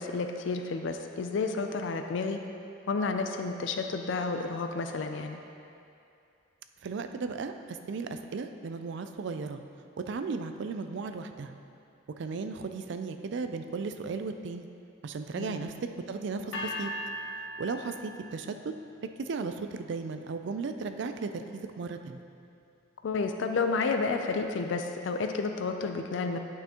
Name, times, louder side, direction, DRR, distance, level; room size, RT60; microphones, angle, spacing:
voice 1, 0.0-2.4 2.9-5.4 15.4-15.7 23.0-26.4, left 4 dB, 60° left, 5 dB, 0.4 m, -31 dB
voice 2, 6.8-9.6 10.1-11.5 12.2-14.7 15.0-15.7 16.1-16.9 17.6-18.7 19.2-22.2, right 4 dB, 55° right, 8 dB, 0.3 m, -35 dB
sound 1, 16.5-18.6, equal, 85° left, 1.2 m, -38 dB
9.2 x 5.6 x 2.9 m, 2.6 s
head